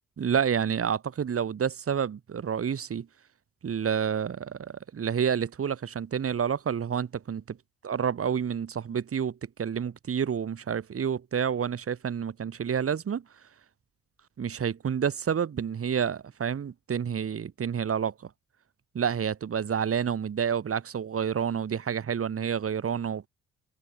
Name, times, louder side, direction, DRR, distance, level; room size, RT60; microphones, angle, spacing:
voice 1, 0.2-3.1 3.6-7.6 7.8-13.2 14.4-18.3 18.9-23.3, right 7 dB, 50° right, 2.9 m, -29 dB
supercardioid pair, 60°, 30 cm